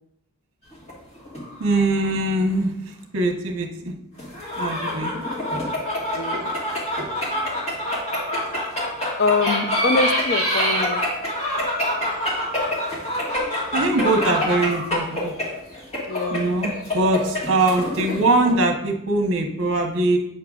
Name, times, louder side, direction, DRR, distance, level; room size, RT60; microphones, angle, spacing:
sound 1, 0.7-2.2 2.5-2.6 4.2-18.5, left 1 dB, 30° left, 1.8 m, -26 dB
voice 1, 1.6-3.9 4.6-5.1 13.7-15.3 16.3-20.2, right 2 dB, 60° right, 1.0 m, -22 dB
voice 2, 6.1-6.5 9.2-11.0 16.1-16.5, left 3 dB, 45° left, 0.4 m, -24 dB
8.4 x 6.6 x 2.4 m
head